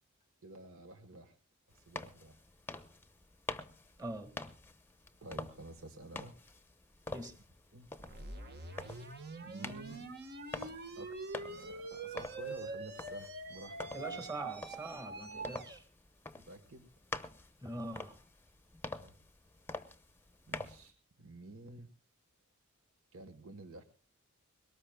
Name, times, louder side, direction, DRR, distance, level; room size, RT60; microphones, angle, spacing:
voice 1, 0.4-1.4 1.7-2.4 5.2-6.6 7.7-7.9 9.4-10.1 11.0-14.3 16.4-16.9 18.9-19.2 20.5-21.9 23.1-23.8, right 2 dB, 70° right, 1.4 m, -51 dB
sound 1, 1.7-20.9, left 3 dB, 10° left, 0.8 m, -47 dB
voice 2, 4.0-4.3 7.1-7.4 13.9-15.8 17.6-18.2, right 1 dB, 20° right, 1.8 m, -43 dB
sound 2, 8.0-15.8, right 3 dB, 50° right, 1.5 m, -45 dB
22.0 x 18.5 x 2.3 m
head